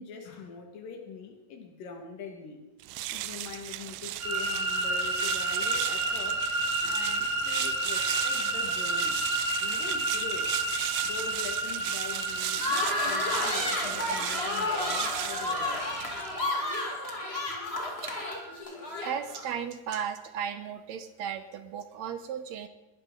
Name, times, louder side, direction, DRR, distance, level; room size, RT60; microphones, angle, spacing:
voice 1, 0.0-2.6 3.1-6.4 6.8-9.2 9.6-10.5 11.0-12.6 13.0-15.8, left 5 dB, 90° left, 2 dB, 3.5 m, -43 dB
sound 1, 2.8-16.5, right 16 dB, 85° right, 2.2 m, -36 dB
sound 2, 4.2-18.5, right 2 dB, 50° right, 4.3 m, -32 dB
sound 3, 12.6-19.5, left 2 dB, 20° left, 2.1 m, -31 dB
voice 2, 19.0-22.7, right 8 dB, 70° right, 9 dB, 1.9 m, -35 dB
21.0 x 13.0 x 3.8 m, 1.1 s
omnidirectional pair, 3.8 m